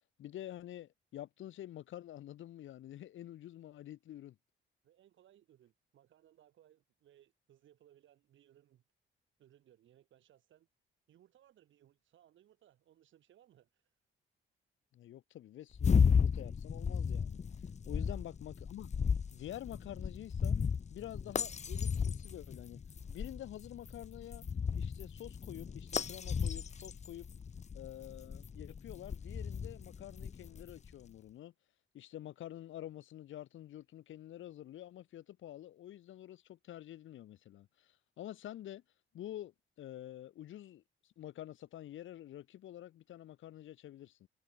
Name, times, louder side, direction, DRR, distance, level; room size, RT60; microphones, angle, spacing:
voice 1, 0.2-4.4 14.9-17.4 17.9-18.9 19.3-20.6 20.9-22.8 23.1-24.4 24.8-27.3 27.7-31.5 31.9-38.8 39.1-44.3, left 12 dB, 75° left, 4.0 m, -48 dB
voice 2, 4.8-8.8 9.4-10.7 11.1-13.9 17.8-18.2, right 11 dB, 75° right, 7.2 m, -65 dB
sound 1, 15.7-30.9, left 6 dB, 35° left, 1.1 m, -34 dB
cardioid pair, 90°, 20 cm